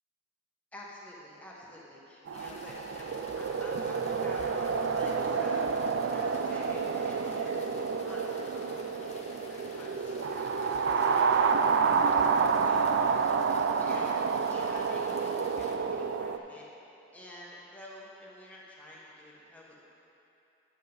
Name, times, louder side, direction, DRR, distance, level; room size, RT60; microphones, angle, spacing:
voice 1, 0.7-16.7 17.1-19.8, left 1 dB, 10° left, -5 dB, 1.3 m, -49 dB
sound 1, 2.3-15.8, left 3 dB, 35° left, 0.8 m, -52 dB
sound 2, 2.3-16.4, right 5 dB, 65° right, 0.4 m, -29 dB
10.0 x 7.3 x 3.9 m, 2.9 s
head